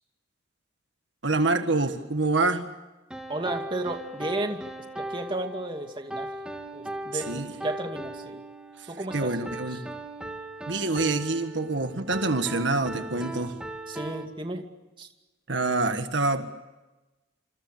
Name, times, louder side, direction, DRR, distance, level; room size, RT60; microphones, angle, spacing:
voice 1, 1.2-2.7 7.1-7.5 8.8-8.9 9.1-9.8 10.7-13.6 15.5-16.5, right 2 dB, 65° right, 7 dB, 1.7 m, -26 dB
sound 1, 3.1-14.3, right 1 dB, 5° right, 2.5 m, -38 dB
voice 2, 3.3-4.6 5.0-6.3 6.7-8.4 8.9-9.3 13.9-14.7 15.0-15.1, right 1 dB, 25° right, 4 dB, 2.4 m, -33 dB
27.5 x 27.0 x 6.7 m, 1.1 s
head